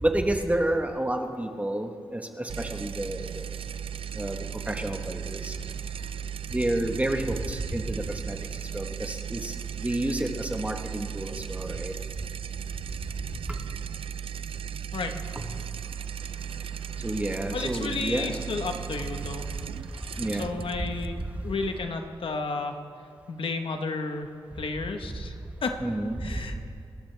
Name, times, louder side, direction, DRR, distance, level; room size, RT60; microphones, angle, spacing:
voice 1, 0.0-3.5 4.1-5.5 6.5-8.4 8.7-9.5 9.8-11.9 15.3-15.5 17.0-18.4 20.2-20.6 25.8-26.6, right 1 dB, 15° right, 4 dB, 1.2 m, -30 dB
sound 1, 2.5-21.8, right 8 dB, 75° right, 0.4 m, -36 dB
voice 2, 17.5-19.4 20.4-21.2 21.4-22.8 23.3-24.3 24.6-25.8 26.2-26.6, left 3 dB, 70° left, 5 dB, 1.2 m, -32 dB
27.5 x 13.0 x 3.4 m, 2.3 s
wide cardioid pair, 100°, 9 cm